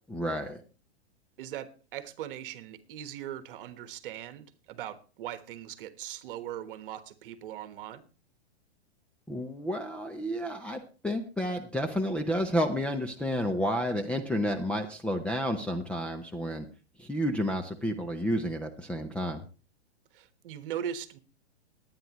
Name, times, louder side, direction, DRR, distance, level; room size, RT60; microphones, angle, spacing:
voice 1, 0.1-0.6 9.3-16.7 17.0-19.4, equal, 5° left, 4 dB, 0.5 m, -31 dB
voice 2, 1.4-8.0 20.1-21.2, right 10 dB, 50° right, 12 dB, 1.4 m, -40 dB
21.0 x 9.4 x 3.0 m, 0.36 s
hypercardioid pair, 140°, 34 cm